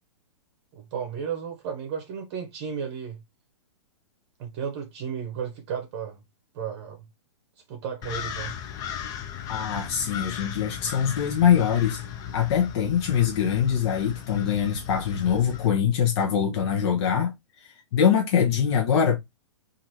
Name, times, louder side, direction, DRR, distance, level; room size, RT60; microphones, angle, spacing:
voice 1, 0.7-3.2 4.4-6.2 6.5-7.0 7.7-8.5, right 7 dB, 40° right, 0.8 m, -33 dB
sound 1, 8.0-15.7, left 8 dB, 25° left, 0.5 m, -37 dB
voice 2, 9.5-12.0 12.3-17.3 17.6-19.2, left 8 dB, 55° left, 0.7 m, -23 dB
3.0 x 2.5 x 2.6 m
hypercardioid pair, 135°, 16 cm